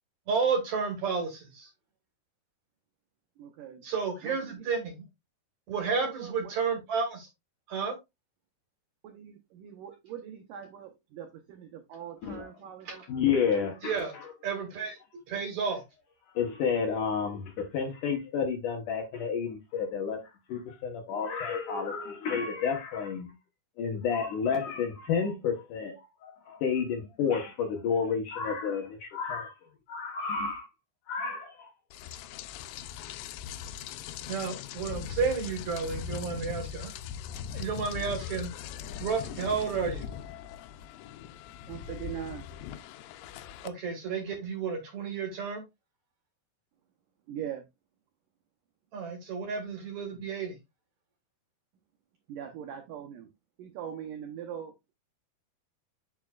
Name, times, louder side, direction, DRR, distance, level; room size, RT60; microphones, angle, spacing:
voice 1, 0.3-1.7 3.8-5.0 5.7-7.3 7.7-8.0 12.8-13.0 13.8-14.2 14.4-15.0 15.3-15.8 34.3-36.9 37.5-38.5 39.0-40.1 43.6-45.6 48.9-50.6, right 5 dB, 55° right, 2.2 m, -31 dB
voice 2, 3.4-3.8 4.2-4.7 5.9-6.5 9.0-13.0 41.7-42.5 47.3-47.7 52.3-53.3 53.6-54.9, right 9 dB, 75° right, 2.0 m, -41 dB
voice 3, 13.1-14.0 16.3-20.2 20.5-23.3 23.8-26.0 26.2-29.5 29.9-30.7 31.1-31.7, left 6 dB, 65° left, 2.2 m, -30 dB
Rain, 31.9-43.7, left 9 dB, 85° left, 2.8 m, -40 dB
9.4 x 5.7 x 2.4 m
omnidirectional pair, 4.9 m